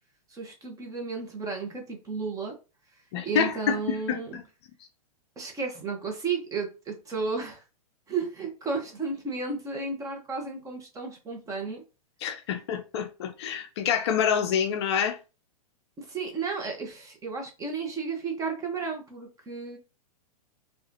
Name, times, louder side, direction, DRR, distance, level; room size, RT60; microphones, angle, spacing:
voice 1, 0.3-2.5 3.2-4.4 5.4-7.6 8.1-11.8 16.0-19.8, right 4 dB, 15° right, 1.1 m, -33 dB
voice 2, 3.1-4.4 12.2-15.2, left 8 dB, 45° left, 0.5 m, -27 dB
4.6 x 2.5 x 2.7 m
figure-of-eight pair, 105°, 20 cm